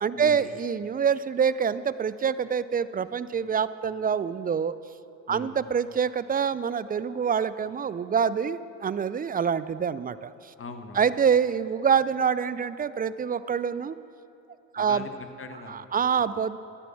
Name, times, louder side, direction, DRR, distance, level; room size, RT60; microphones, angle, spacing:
voice 1, 0.0-4.7 5.3-10.3 11.0-14.0 14.7-15.1 15.7-16.6, right 7 dB, 20° right, 15 dB, 0.4 m, -26 dB
voice 2, 10.6-11.1 14.8-16.0, left 4 dB, 30° left, 7 dB, 1.5 m, -41 dB
13.5 x 10.5 x 7.1 m, 2.9 s
hypercardioid pair, 70°, 42 cm